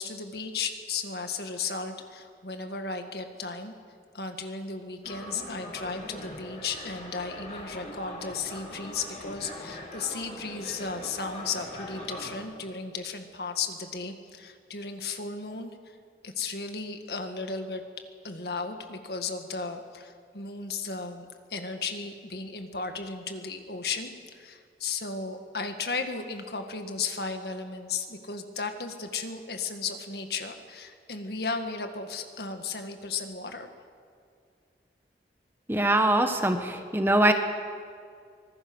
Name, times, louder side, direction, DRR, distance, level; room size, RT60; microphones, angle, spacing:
voice 1, 0.0-3.7 4.1-16.0 16.2-17.8 18.2-33.7, left 4 dB, 65° left, 6 dB, 1.8 m, -35 dB
sound 1, 5.0-12.4, left 1 dB, 40° left, 4.7 m, -41 dB
voice 2, 35.7-37.3, right 1 dB, 15° right, 6 dB, 1.3 m, -23 dB
24.5 x 20.0 x 6.3 m, 2.2 s
head